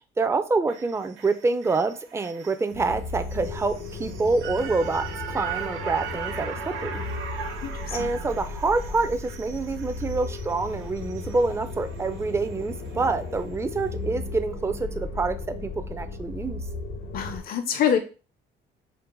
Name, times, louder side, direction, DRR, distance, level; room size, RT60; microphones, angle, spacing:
voice 1, 0.2-7.0 7.9-16.6, right 3 dB, 15° right, 9 dB, 0.4 m, -27 dB
sound 1, 0.7-13.0 13.4-13.5, right 8 dB, 85° right, 0.7 m, -39 dB
sound 2, 2.7-17.4, left 3 dB, 85° left, 1.0 m, -35 dB
voice 2, 7.6-8.1 17.1-18.0, left 8 dB, 50° left, 7 dB, 0.5 m, -25 dB
4.6 x 2.1 x 3.7 m, 0.35 s
cardioid pair, 90°, 20 cm